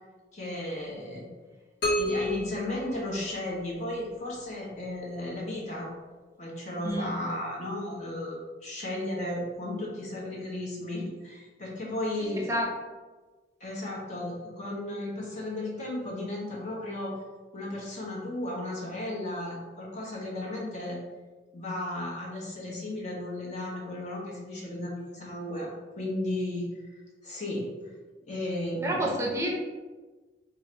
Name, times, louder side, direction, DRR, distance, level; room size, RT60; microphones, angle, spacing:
voice 1, 0.3-1.2 2.0-5.9 6.4-12.4 13.6-17.2 17.5-21.0 21.5-25.7 26.0-26.7 27.2-27.7 28.3-29.1, left 1 dB, 40° left, -3 dB, 0.8 m, -34 dB
sound 1, 1.8-3.7, equal, 90° left, 1.0 m, -31 dB
voice 2, 12.1-12.7 28.8-29.5, right 1 dB, 15° right, -2 dB, 0.7 m, -29 dB
3.1 x 2.4 x 4.3 m, 1.3 s
head